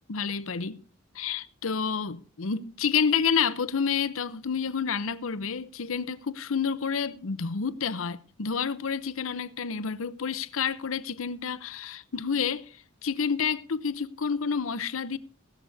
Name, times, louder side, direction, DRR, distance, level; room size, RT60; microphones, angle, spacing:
voice 1, 0.1-0.8 1.1-12.7 13.0-15.2, left 6 dB, 70° left, 0.8 m, -29 dB
16.5 x 14.5 x 2.7 m
head